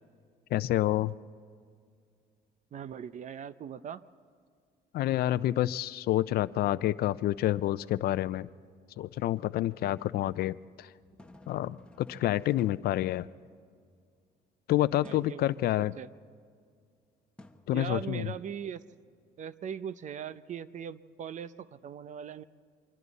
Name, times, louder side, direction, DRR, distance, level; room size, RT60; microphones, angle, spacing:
voice 1, 0.5-1.1 4.9-8.5 9.0-10.9 11.5-13.3 14.7-15.9 17.7-18.3, left 14 dB, 65° left, 16 dB, 0.5 m, -28 dB
voice 2, 2.7-4.0 15.0-15.5 16.0-16.1 17.7-18.8 19.4-22.4, right 8 dB, 45° right, 15 dB, 0.7 m, -40 dB
sound 1, 11.0-13.8 15.0-15.5 17.4-18.5, left 1 dB, 5° left, 1.3 m, -54 dB
28.5 x 24.5 x 4.1 m, 2.1 s
cardioid pair, 110°, 17 cm